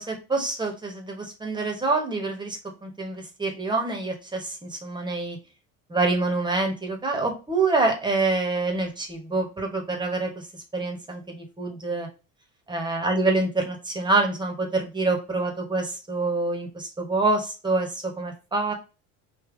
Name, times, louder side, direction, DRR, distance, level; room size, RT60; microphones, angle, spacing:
voice 1, 0.0-5.4 5.9-10.3 10.7-12.1 12.7-18.7, right 3 dB, 10° right, 3 dB, 1.2 m, -26 dB
3.4 x 2.8 x 3.7 m, 0.31 s
cardioid pair, 130°, 37 cm